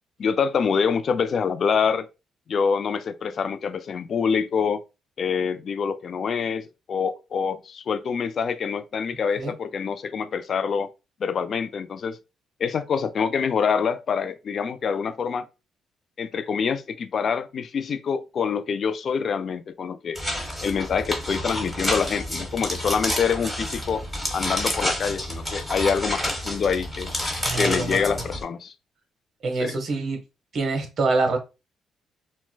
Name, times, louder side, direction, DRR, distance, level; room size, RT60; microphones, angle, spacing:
voice 1, 0.2-2.1 2.5-4.8 5.2-10.9 11.2-12.2 12.6-15.5 16.2-20.2 20.6-24.0 24.3-27.1 27.6-28.7 29.6-29.8, left 6 dB, 55° left, 0.4 m, -26 dB
sound 1, 20.2-28.4, equal, ahead, 1.2 m, -29 dB
voice 2, 27.4-28.0 29.4-30.2 30.5-31.4, right 3 dB, 55° right, 0.9 m, -25 dB
4.4 x 2.1 x 2.2 m
cardioid pair, 90°, 0 cm